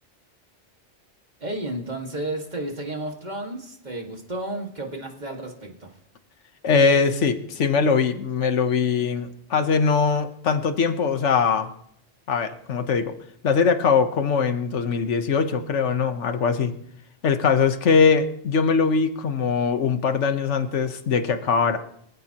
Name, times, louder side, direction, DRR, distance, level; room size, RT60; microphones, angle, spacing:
voice 1, 1.4-5.9, right 1 dB, 40° right, 2 dB, 2.0 m, -32 dB
voice 2, 6.6-11.7 12.3-13.1 13.4-16.7 17.2-21.8, left 5 dB, 80° left, 9 dB, 1.3 m, -21 dB
23.5 x 15.0 x 2.9 m, 0.70 s
omnidirectional pair, 1.2 m